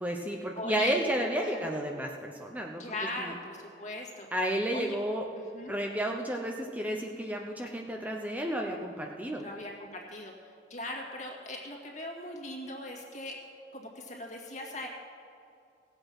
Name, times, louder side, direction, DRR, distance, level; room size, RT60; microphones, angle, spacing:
voice 1, 0.0-2.8 3.2-3.3 4.3-5.2 5.7-9.4, right 1 dB, 10° right, 1 dB, 0.8 m, -32 dB
voice 2, 0.5-0.9 1.4-1.7 2.8-4.3 4.7-5.0 5.4-5.7 9.3-13.3 13.7-14.9, left 1 dB, 40° left, 0 dB, 2.2 m, -40 dB
17.0 x 7.9 x 6.1 m, 2.5 s
head